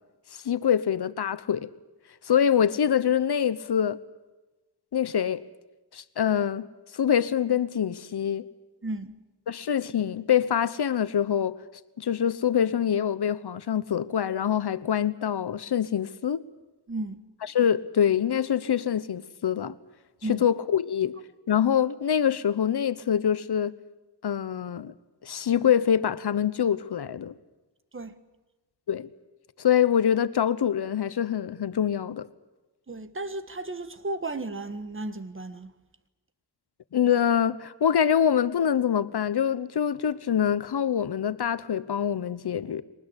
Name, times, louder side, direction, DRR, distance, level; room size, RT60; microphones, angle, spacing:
voice 1, 0.3-1.7 2.2-4.0 4.9-5.4 5.9-6.7 6.9-8.4 9.5-11.5 12.0-16.4 17.5-19.7 20.3-21.1 21.5-23.7 24.2-24.9 25.2-27.3 28.9-29.1 29.6-32.3 36.9-42.8, left 9 dB, 70° left, 1.1 m, -25 dB
voice 2, 8.8-9.1 16.9-17.2 20.2-20.4 27.9-28.1 32.9-35.7, right 2 dB, 30° right, 1.5 m, -34 dB
23.0 x 20.0 x 9.9 m
wide cardioid pair, 100°, 41 cm